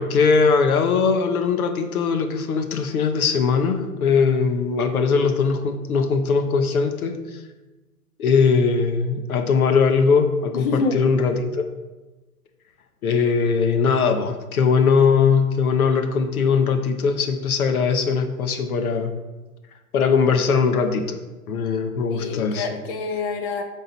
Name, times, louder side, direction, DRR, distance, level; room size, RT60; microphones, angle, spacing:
voice 1, 0.0-7.4 8.2-11.6 13.0-19.1 19.9-22.8, left 5 dB, 70° left, 6 dB, 1.0 m, -20 dB
voice 2, 10.6-11.0 22.1-23.6, left 4 dB, 35° left, 5 dB, 1.0 m, -26 dB
9.1 x 3.8 x 4.2 m, 1.2 s
hypercardioid pair, 125°, 45 cm